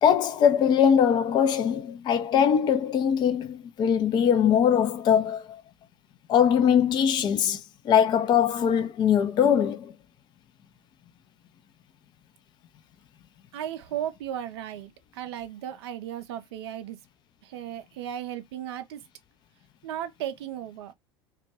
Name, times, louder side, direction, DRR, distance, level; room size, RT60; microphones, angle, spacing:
voice 1, 0.0-5.6 6.3-9.9, left 8 dB, 30° left, 0.4 m, -22 dB
voice 2, 13.5-17.0 17.4-19.0 19.8-20.9, right 10 dB, 60° right, 0.4 m, -35 dB
2.2 x 2.1 x 2.8 m
figure-of-eight pair, 75°, 15 cm